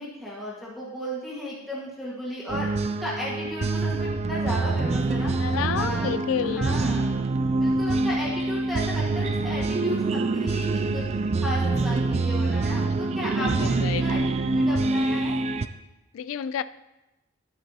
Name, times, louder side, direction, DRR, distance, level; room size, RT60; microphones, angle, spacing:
voice 1, 0.0-6.1 6.4-7.2 7.6-11.0 11.4-14.2 14.5-15.3, equal, ahead, -9 dB, 1.5 m, -34 dB
sound 1, 2.5-15.7, right 3 dB, 30° right, 0.3 m, -25 dB
voice 2, 5.4-6.7 13.2-14.0 16.1-16.6, left 8 dB, 75° left, 16 dB, 0.3 m, -30 dB
10.5 x 8.6 x 2.8 m, 0.99 s
head